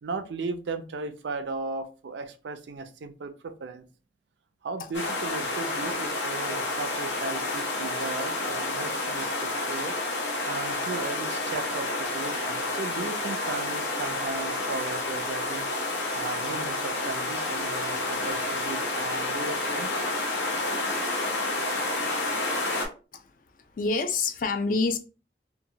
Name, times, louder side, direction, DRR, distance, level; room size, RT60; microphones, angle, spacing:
voice 1, 0.0-3.8 4.6-9.9 10.3-15.7 15.9-20.1, right 3 dB, 80° right, 0.4 m, -36 dB
sound 1, 4.9-22.9, left 2 dB, 80° left, 0.7 m, -29 dB
voice 2, 23.7-25.0, left 4 dB, 50° left, 0.4 m, -27 dB
2.9 x 2.2 x 2.7 m
head